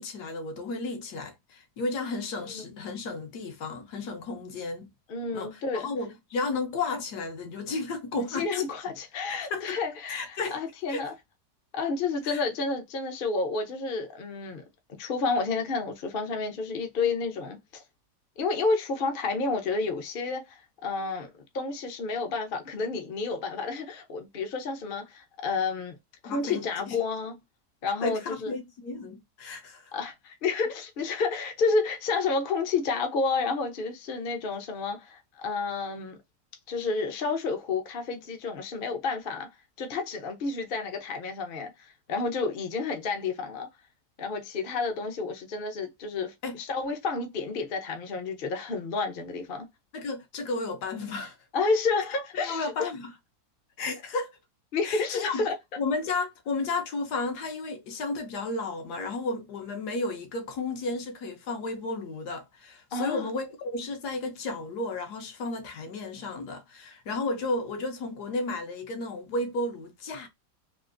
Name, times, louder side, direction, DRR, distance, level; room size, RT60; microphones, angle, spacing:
voice 1, 0.0-4.9 5.3-8.5 8.8-8.9 9.3-9.8 10.1-10.6 10.9-11.1 12.2-12.4 26.2-27.0 28.0-29.9 46.4-46.6 49.9-51.4 52.4-53.1 53.8-54.4 54.8-55.5 55.8-70.3, left 3 dB, 70° left, 1.3 m, -33 dB
voice 2, 5.1-5.9 8.2-11.1 11.7-14.6 15.0-17.8 18.4-21.3 21.5-25.9 26.2-27.4 27.8-28.6 29.9-36.2 36.7-39.5 39.8-43.7 44.2-49.7 51.5-52.9 54.7-55.5 62.9-63.2, left 4 dB, 50° left, 0.7 m, -30 dB
3.6 x 2.5 x 2.5 m
omnidirectional pair, 1.8 m